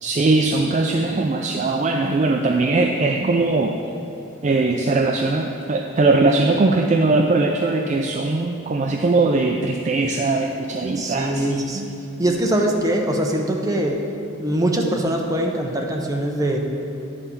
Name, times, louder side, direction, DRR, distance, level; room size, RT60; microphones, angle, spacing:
voice 1, 0.0-3.8 4.4-11.9, right 3 dB, 35° right, 3 dB, 0.3 m, -20 dB
voice 2, 11.0-11.8 12.2-14.0 14.4-16.6, right 1 dB, 15° right, 1 dB, 0.7 m, -22 dB
9.9 x 4.2 x 6.9 m, 2.7 s
head